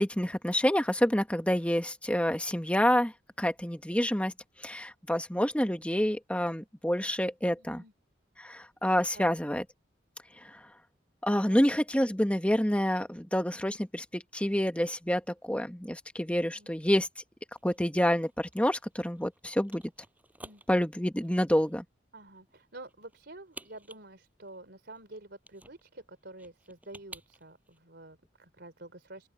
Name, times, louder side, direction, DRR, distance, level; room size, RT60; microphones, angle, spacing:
voice 1, 0.0-3.1 3.4-4.3 4.6-7.8 8.4-9.6 11.2-17.1 17.6-19.8 20.7-21.8, equal, 5° left, 1.6 m, -28 dB
voice 2, 7.6-7.9 9.1-9.4 11.4-11.8 16.5-16.7 20.4-20.6 22.1-29.3, right 2 dB, 60° right, 4.1 m, -49 dB
sound 1, 17.6-27.8, right 2 dB, 10° right, 7.5 m, -53 dB
open air
head